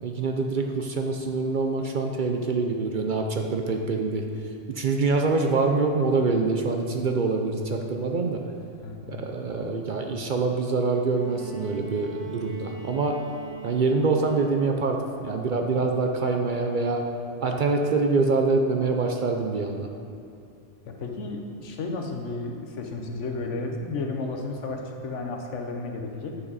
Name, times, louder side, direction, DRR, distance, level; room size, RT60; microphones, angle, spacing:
voice 1, 0.0-4.2 4.7-8.4 9.1-13.2 13.6-17.1 17.4-19.9, right 3 dB, 55° right, 2 dB, 0.6 m, -25 dB
voice 2, 8.8-9.2 9.5-9.8 20.9-26.4, left 3 dB, 85° left, 3 dB, 1.2 m, -33 dB
Bowed string instrument, 11.1-15.1 16.4-16.5, right 4 dB, 90° right, 2.5 m, -41 dB
9.4 x 6.0 x 4.0 m, 2.6 s
omnidirectional pair, 1.2 m